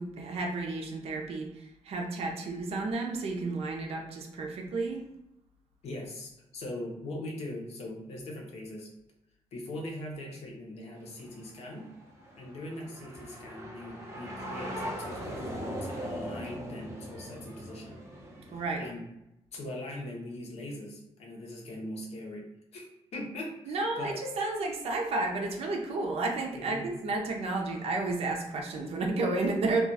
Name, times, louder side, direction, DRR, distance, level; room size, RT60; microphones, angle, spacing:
voice 1, 0.0-5.0 18.5-18.9 23.7-29.8, right 3 dB, 65° right, 1 dB, 0.5 m, -32 dB
voice 2, 5.8-8.9 9.5-11.9 12.4-18.0 18.8-19.0 19.5-22.5 22.7-22.9 23.1-24.2 24.6-24.7 26.5-26.9, left 1 dB, 75° left, 0 dB, 0.8 m, -41 dB
sound 1, 11.0-18.7, equal, 25° right, 0.7 m, -40 dB
2.4 x 2.2 x 3.9 m, 0.88 s
cardioid pair, 130°, 11 cm